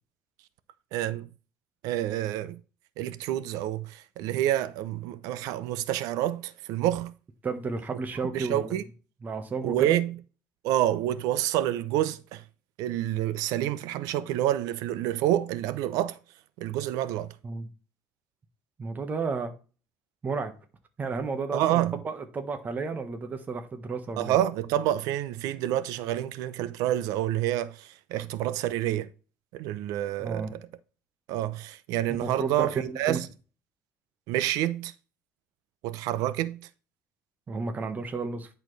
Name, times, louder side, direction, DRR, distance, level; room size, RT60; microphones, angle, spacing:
voice 1, 0.9-1.3 1.8-2.6 3.0-7.1 8.3-8.8 9.6-10.2 10.6-12.4 12.8-16.2 16.6-17.3 21.5-22.0 24.2-29.1 29.5-30.6 31.3-33.3 34.3-34.9 35.8-36.6, right 13 dB, 80° right, 0.6 m, -28 dB
voice 2, 7.4-8.8 9.2-10.0 17.4-17.7 18.8-19.5 20.2-20.5 21.0-24.3 30.2-30.5 32.2-33.2 37.5-38.5, right 4 dB, 30° right, 1.3 m, -32 dB
10.5 x 4.4 x 3.2 m
cardioid pair, 130°, 6 cm